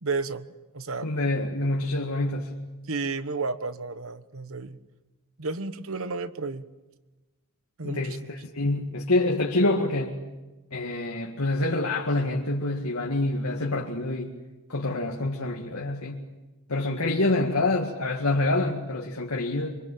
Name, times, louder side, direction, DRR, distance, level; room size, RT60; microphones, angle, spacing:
voice 1, 0.0-0.5 0.7-1.1 2.9-4.8 5.4-6.7 7.8-8.3, right 4 dB, 65° right, 13 dB, 1.2 m, -32 dB
voice 2, 1.0-2.6 7.8-10.2 10.7-14.3 14.7-16.3 16.7-19.8, left 2 dB, 75° left, 0 dB, 2.1 m, -26 dB
26.5 x 24.5 x 8.7 m, 1.1 s
head